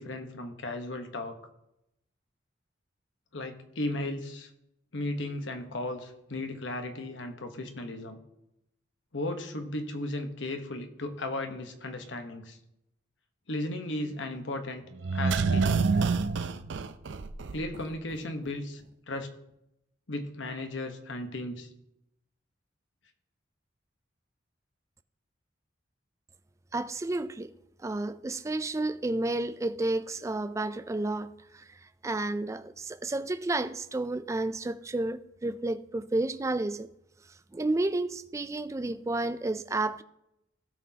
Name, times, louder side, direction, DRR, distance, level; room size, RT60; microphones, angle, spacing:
voice 1, 0.0-1.4 3.3-4.5 4.9-8.2 9.1-12.6 13.5-14.9 15.1-15.9 17.5-19.3 20.1-21.7, left 2 dB, 80° left, 1.1 m, -35 dB
sound 1, 15.0-17.9 18.1-18.2, right 4 dB, 75° right, 0.5 m, -27 dB
voice 2, 26.7-27.5 27.8-31.6 32.0-36.9 37.5-40.0, right 2 dB, 15° right, 0.3 m, -31 dB
17.0 x 6.1 x 2.8 m
head